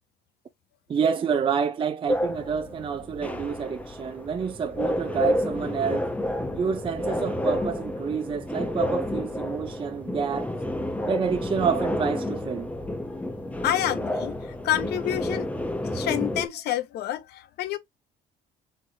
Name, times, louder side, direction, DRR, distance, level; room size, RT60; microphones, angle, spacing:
voice 1, 0.9-6.1 6.5-10.5 11.0-12.7, right 6 dB, 30° right, 0.6 m, -28 dB
sound 1, 2.1-16.5, left 1 dB, 10° left, 0.9 m, -30 dB
voice 2, 13.6-15.5 15.9-17.8, left 12 dB, 75° left, 1.0 m, -28 dB
4.3 x 3.2 x 2.8 m
cardioid pair, 110°, 17 cm